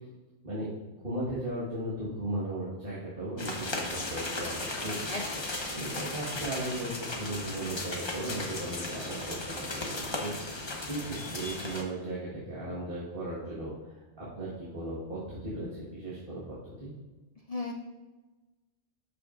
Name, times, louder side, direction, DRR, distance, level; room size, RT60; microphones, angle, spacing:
voice 1, 0.4-5.1 5.7-16.9, right 1 dB, 45° right, -8 dB, 1.8 m, -37 dB
sound 1, 3.4-11.8, left 2 dB, 25° left, 0.8 m, -36 dB
voice 2, 5.1-5.5 17.5-17.7, left 2 dB, 80° left, 2 dB, 0.3 m, -35 dB
12.0 x 5.9 x 2.5 m, 1.2 s
omnidirectional pair, 1.3 m